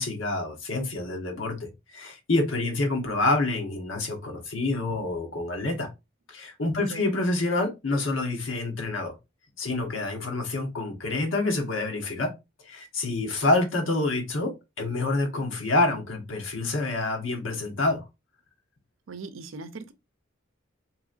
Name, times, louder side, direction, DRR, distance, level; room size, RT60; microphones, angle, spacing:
voice 1, 0.0-5.9 6.3-9.1 9.6-12.3 12.7-18.0, left 2 dB, 75° left, 1.1 m, -27 dB
voice 2, 6.8-7.1 19.1-19.9, right 3 dB, 80° right, 0.5 m, -39 dB
3.8 x 2.9 x 2.5 m
head